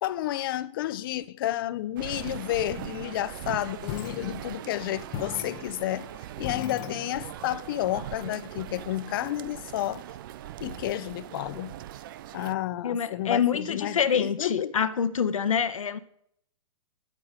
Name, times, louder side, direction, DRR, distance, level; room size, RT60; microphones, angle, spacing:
voice 1, 0.0-6.1 6.4-10.0 10.6-11.8 12.3-14.7, left 14 dB, 45° left, 0.7 m, -31 dB
sound 1, 2.0-12.5, right 13 dB, 40° right, 0.5 m, -41 dB
sound 2, 3.9-4.8 5.1-7.5, left 9 dB, 25° left, 1.1 m, -39 dB
voice 2, 12.8-16.0, left 7 dB, 85° left, 1.2 m, -26 dB
9.9 x 8.6 x 8.9 m
hypercardioid pair, 145°, 17 cm